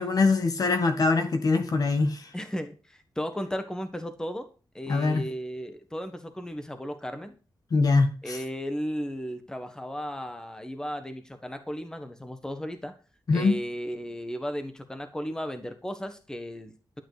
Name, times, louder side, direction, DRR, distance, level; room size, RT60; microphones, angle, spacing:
voice 1, 0.0-2.3 4.9-5.2 7.7-8.4 13.3-13.6, left 3 dB, 50° left, 1.6 m, -23 dB
voice 2, 2.3-4.5 4.7-7.3 8.2-12.9 13.3-17.0, equal, 10° left, 1.4 m, -35 dB
12.0 x 9.1 x 5.1 m
wide cardioid pair, 170°, 8 cm